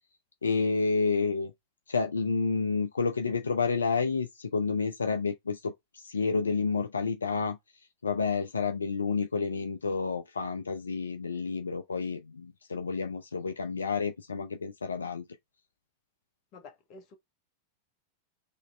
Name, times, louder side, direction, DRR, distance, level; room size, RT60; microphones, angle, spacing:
voice 1, 0.4-1.5 1.9-7.6 8.0-15.2, left 4 dB, 75° left, 0.5 m, -30 dB
voice 2, 16.5-17.2, left 3 dB, 40° left, 1.3 m, -50 dB
4.0 x 3.1 x 3.9 m
figure-of-eight pair, 90°, 0 cm